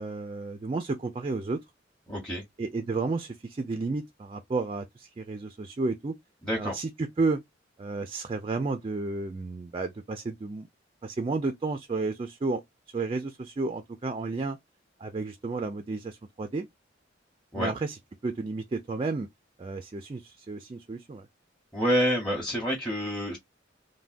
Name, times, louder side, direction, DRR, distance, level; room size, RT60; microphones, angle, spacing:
voice 1, 0.0-1.6 2.6-6.1 6.5-7.4 7.8-10.7 11.0-12.6 12.9-14.6 15.0-16.7 17.5-18.0 18.2-19.3 19.6-21.3, right 3 dB, 30° right, 0.3 m, -32 dB
voice 2, 2.1-2.4 6.4-6.7 17.5-17.7 21.7-23.4, equal, 5° left, 0.7 m, -27 dB
3.3 x 2.1 x 2.4 m
head